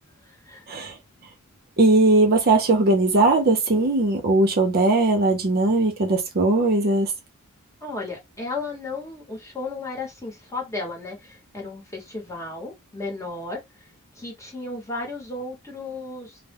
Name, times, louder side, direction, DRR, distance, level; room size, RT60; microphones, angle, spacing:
voice 1, 0.3-0.6 7.8-13.9 14.2-16.4, left 3 dB, 15° left, 1.0 m, -34 dB
voice 2, 1.8-7.1, right 2 dB, 45° right, 0.6 m, -19 dB
2.2 x 2.0 x 3.3 m
head